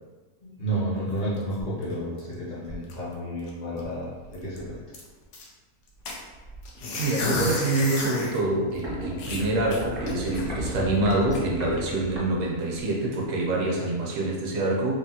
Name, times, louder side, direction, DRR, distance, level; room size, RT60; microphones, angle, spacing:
voice 1, 0.4-4.8, right 1 dB, 40° left, -8 dB, 0.7 m, -31 dB
sound 1, 1.0-2.4 2.6-3.1 3.5-3.6 3.8-4.0 4.3-5.5 6.1-8.4 8.8-8.9 9.2-10.7 11.1-11.4, left 2 dB, 70° left, 1.0 m, -32 dB
voice 2, 7.0-14.9, right 2 dB, 65° right, -2 dB, 0.9 m, -26 dB
Walk footsteps, 8.7-13.0 13.2-13.3, equal, 30° right, 0.5 m, -36 dB
3.2 x 2.1 x 2.7 m, 1.3 s
omnidirectional pair, 1.6 m